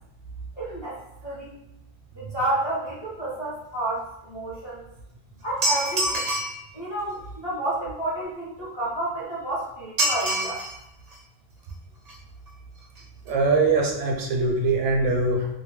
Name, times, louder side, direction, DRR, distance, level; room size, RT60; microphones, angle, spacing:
voice 1, 0.6-1.6 2.1-4.8 5.4-6.3 6.7-10.6, right 1 dB, 30° left, -8 dB, 0.5 m, -30 dB
sound 1, 5.6-6.6 10.0-10.7 11.1-11.2 12.1-12.2 12.5-12.6 12.8-13.0 13.3-13.4, right 1 dB, 45° right, 0.5 m, -25 dB
voice 2, 13.3-15.5, right 3 dB, 75° right, 1 dB, 0.9 m, -22 dB
2.7 x 2.1 x 3.1 m, 0.84 s
omnidirectional pair, 1.3 m